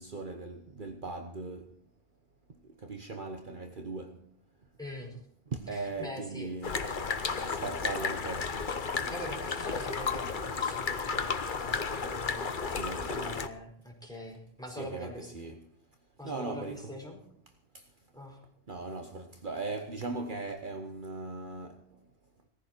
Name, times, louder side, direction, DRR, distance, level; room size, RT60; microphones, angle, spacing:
voice 1, 0.0-1.7 2.8-4.2 5.5-6.8 7.5-8.5 12.7-13.4 14.7-15.6 16.2-16.9 18.7-21.8, right 3 dB, 50° right, 1.3 m, -39 dB
voice 2, 4.8-5.1 5.7-6.5 9.1-15.5 16.2-17.2 18.1-18.4, left 1 dB, 5° left, 4.9 m, -44 dB
sound 1, 6.6-13.5, left 5 dB, 50° left, 1.2 m, -33 dB
18.5 x 14.5 x 4.5 m
omnidirectional pair, 1.1 m